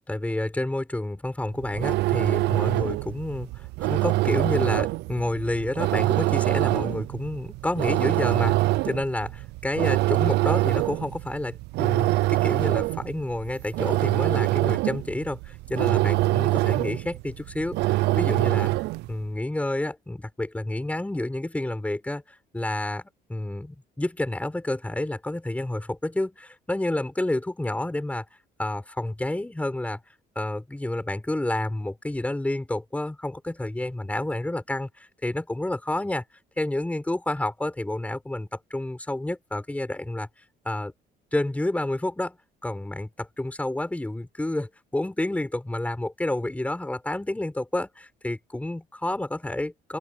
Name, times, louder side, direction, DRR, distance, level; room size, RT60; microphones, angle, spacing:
voice 1, 0.1-18.7 19.1-28.2 28.6-30.0 30.3-36.2 36.6-40.3 40.6-40.9 41.3-42.4 42.6-50.0, left 1 dB, 10° left, 5.0 m, -29 dB
sound 1, 1.5-19.1, right 19 dB, 85° right, 0.5 m, -25 dB
open air
cardioid pair, 110°, 17 cm